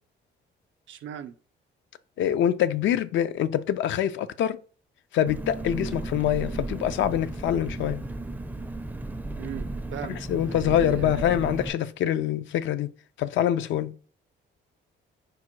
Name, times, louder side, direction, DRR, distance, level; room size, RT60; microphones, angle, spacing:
voice 1, 0.9-1.3 9.4-10.2 10.5-11.3, right 10 dB, 70° right, 0.5 m, -38 dB
voice 2, 2.2-4.6 5.1-8.0 10.1-12.9 13.2-13.9, left 10 dB, 70° left, 0.4 m, -25 dB
Engine, 5.3-11.7, right 2 dB, 10° right, 0.4 m, -34 dB
4.8 x 2.2 x 4.4 m
cardioid pair, 90°, 20 cm